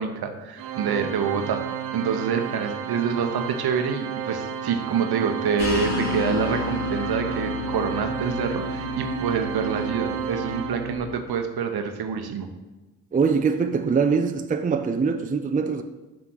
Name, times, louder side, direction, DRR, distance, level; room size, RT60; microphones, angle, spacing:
voice 1, 0.0-1.6 1.9-12.5, right 6 dB, 60° right, 6 dB, 1.0 m, -26 dB
Organ, 0.6-11.4, right 10 dB, 90° right, 0.6 m, -32 dB
sound 1, 5.6-11.0, left 3 dB, 80° left, 1.9 m, -31 dB
voice 2, 13.1-15.8, right 5 dB, 20° right, 8 dB, 0.5 m, -23 dB
6.2 x 3.6 x 6.1 m, 1.1 s
hypercardioid pair, 45°, 42 cm